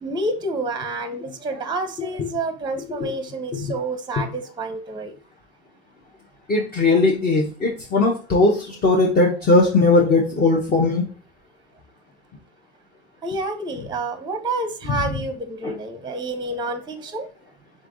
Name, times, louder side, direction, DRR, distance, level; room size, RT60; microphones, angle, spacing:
voice 1, 0.0-5.1 13.2-17.3, right 2 dB, 15° right, 9 dB, 0.7 m, -28 dB
voice 2, 6.5-11.0 15.6-15.7, left 2 dB, 30° left, -2 dB, 1.0 m, -18 dB
3.7 x 3.4 x 3.9 m, 0.37 s
hypercardioid pair, 90°, 29 cm